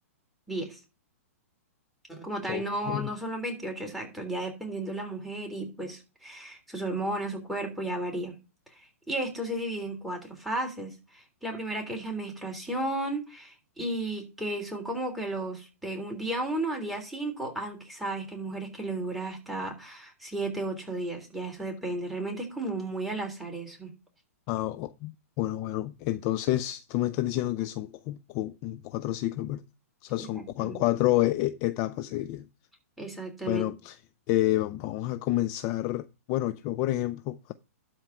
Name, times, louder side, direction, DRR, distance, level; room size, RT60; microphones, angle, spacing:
voice 1, 0.5-0.8 2.1-8.3 8.7-23.9 30.2-30.8 33.0-33.7, right 1 dB, ahead, 3.4 m, -34 dB
voice 2, 2.5-3.1 24.5-29.6 30.0-32.5 33.5-34.0 34.3-37.5, left 15 dB, 35° left, 0.5 m, -29 dB
12.0 x 4.5 x 5.8 m
hypercardioid pair, 135°, 8 cm